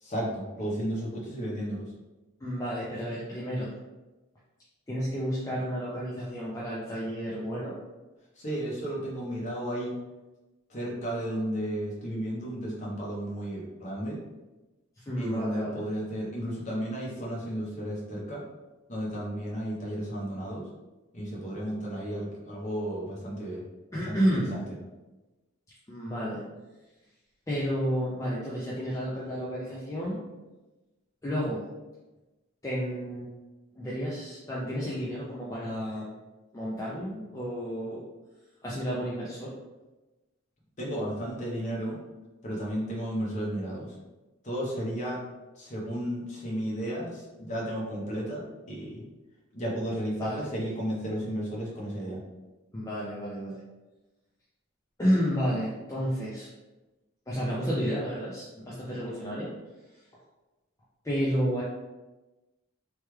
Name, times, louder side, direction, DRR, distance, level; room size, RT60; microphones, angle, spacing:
voice 1, 0.0-1.9 8.4-10.0 10.7-14.2 15.2-18.4 18.9-20.7 21.1-23.6 24.1-24.2 24.5-24.6 40.8-42.0 42.4-44.0 44.4-45.2 45.5-49.0 49.5-52.2, equal, 35° left, -4 dB, 0.8 m, -33 dB
voice 2, 2.4-3.7 4.9-7.8 15.0-15.8 23.9-24.5 25.9-26.4 27.5-30.2 31.2-31.6 32.6-33.3 33.8-36.2 36.5-38.0 38.6-39.5 50.2-50.5 52.7-53.6 55.0-56.5 57.3-59.5 61.0-61.6, equal, 15° left, -7 dB, 0.4 m, -31 dB
3.1 x 2.2 x 3.1 m, 1.1 s
head